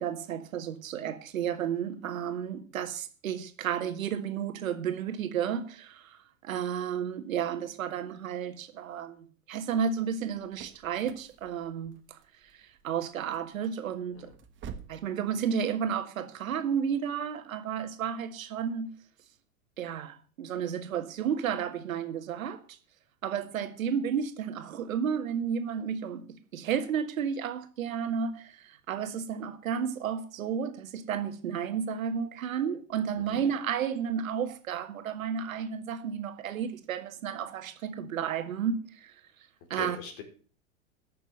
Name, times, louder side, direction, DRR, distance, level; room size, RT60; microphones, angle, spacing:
voice 1, 0.0-12.0 12.5-14.3 14.9-18.9 19.8-22.6 23.2-39.1 39.7-40.0, right 7 dB, 70° right, 1.9 m, -32 dB
sound 1, 10.1-15.1, right 7 dB, 25° right, 1.4 m, -49 dB
voice 2, 39.7-40.2, left 5 dB, 50° left, 4.4 m, -42 dB
12.0 x 6.7 x 7.9 m
hypercardioid pair, 100°, 42 cm